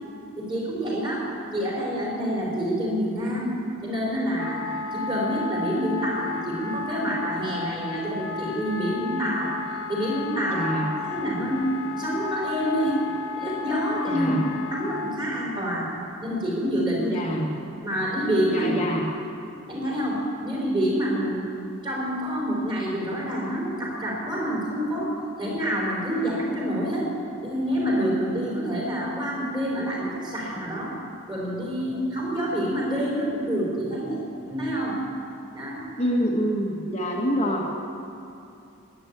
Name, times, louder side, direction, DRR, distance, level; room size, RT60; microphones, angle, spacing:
voice 1, 0.4-1.2 1.5-3.5 3.8-9.5 9.9-10.6 11.0-11.7 12.0-13.0 13.4-14.3 14.7-15.9 16.2-17.3 17.8-18.7 19.7-20.2 20.4-21.4 21.8-25.1 25.4-27.1 27.4-30.9 31.3-34.9 35.5-35.8, equal, 20° right, -4 dB, 4.2 m, -27 dB
Wind instrument woodwind instrument, 4.4-15.2, left 6 dB, 65° left, 1.0 m, -34 dB
voice 2, 10.4-10.9 14.1-14.4 17.1-17.5 18.5-19.0 36.0-37.7, equal, 30° left, -2 dB, 1.3 m, -26 dB
13.0 x 10.5 x 8.7 m, 2.7 s
head